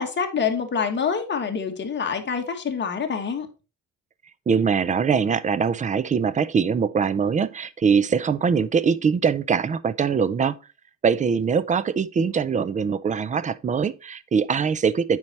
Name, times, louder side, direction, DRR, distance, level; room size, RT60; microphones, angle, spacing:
voice 1, 0.0-3.5, left 6 dB, 35° left, 1.4 m, -26 dB
voice 2, 4.5-10.6 11.0-15.2, right 6 dB, 25° right, 0.4 m, -22 dB
8.6 x 4.7 x 4.1 m
cardioid pair, 135°, 34 cm